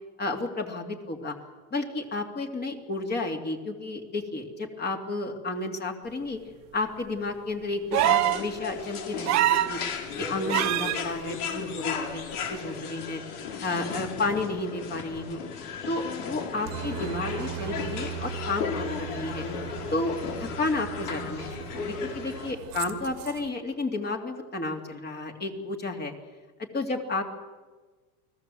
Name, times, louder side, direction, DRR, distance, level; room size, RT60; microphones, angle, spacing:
voice 1, 0.2-1.4 1.7-6.4 6.7-9.8 10.2-12.2 12.5-13.2 13.6-15.4 15.9-19.5 19.9-20.2 20.6-21.5 21.7-26.1 26.7-27.2, left 2 dB, 20° left, 3 dB, 2.8 m, -31 dB
sound 1, 7.9-22.5, left 6 dB, 80° left, 5.9 m, -35 dB
sound 2, 7.9-8.5 9.3-9.8 10.5-11.0 12.5-12.6, right 14 dB, 35° right, 1.2 m, -23 dB
Aircraft, 16.7-23.5, right 14 dB, 80° right, 2.3 m, -39 dB
29.5 x 20.5 x 7.8 m, 1.4 s
supercardioid pair, 140°, 44 cm